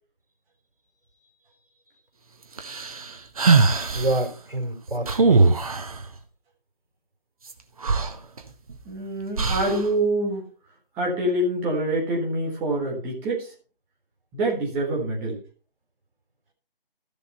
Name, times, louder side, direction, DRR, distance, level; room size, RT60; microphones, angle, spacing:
sound 1, 2.6-4.2 5.1-6.0 7.5-7.6 7.8-8.8 9.4-9.9, right 4 dB, 40° right, 1.2 m, -21 dB
voice 1, 3.9-6.0, right 1 dB, 65° right, 3 dB, 4.0 m, -29 dB
voice 2, 8.8-10.4 11.0-13.5 14.3-15.4, right 1 dB, 5° right, -2 dB, 1.4 m, -25 dB
13.5 x 6.9 x 4.3 m, 0.38 s
figure-of-eight pair, 160°, 29 cm